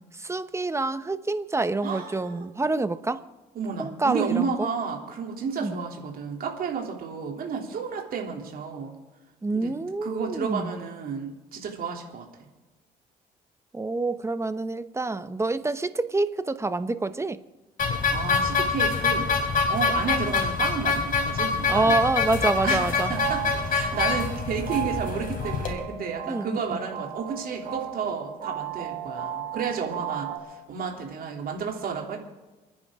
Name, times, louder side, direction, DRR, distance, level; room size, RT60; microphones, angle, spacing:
voice 1, 0.1-3.2 3.8-4.5 5.6-5.8 9.4-10.7 13.7-17.4 21.7-23.1 26.3-26.6, right 2 dB, 15° right, 12 dB, 1.0 m, -27 dB
voice 2, 1.8-2.5 3.5-8.9 9.5-9.7 10.0-12.2 18.1-19.3 19.7-22.0 22.6-32.2, right 6 dB, 60° right, 1 dB, 3.1 m, -31 dB
sound 1, 17.8-25.7, left 5 dB, 55° left, 3.5 m, -25 dB
sound 2, 22.7-30.4, right 10 dB, 75° right, 4.1 m, -35 dB
29.0 x 9.9 x 3.8 m, 1.2 s
supercardioid pair, 75°, 17 cm